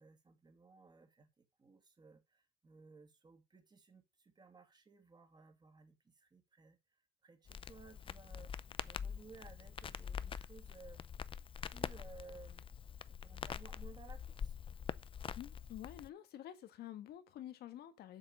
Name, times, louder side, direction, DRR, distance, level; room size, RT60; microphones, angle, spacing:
voice 1, 0.0-8.5 8.8-11.1 11.7-12.7 13.1-14.6, right 4 dB, 25° right, 2.5 m, -59 dB
Crackle, 7.5-16.1, left 7 dB, 30° left, 0.5 m, -45 dB
voice 2, 15.3-18.2, left 12 dB, 70° left, 1.5 m, -49 dB
7.6 x 6.5 x 6.5 m
cardioid pair, 110°, 17 cm